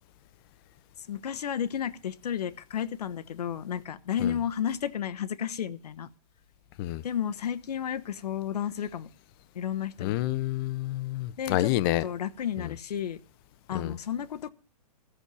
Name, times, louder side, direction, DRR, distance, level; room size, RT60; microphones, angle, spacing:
voice 1, 1.1-6.1 7.0-9.1 9.5-10.2 11.4-11.7 12.0-13.2 13.7-14.5, left 9 dB, 75° left, 1.0 m, -32 dB
voice 2, 10.0-12.0 12.6-12.7 13.7-13.9, left 15 dB, 35° left, 0.7 m, -28 dB
14.5 x 6.5 x 6.9 m
hypercardioid pair, 140°, 20 cm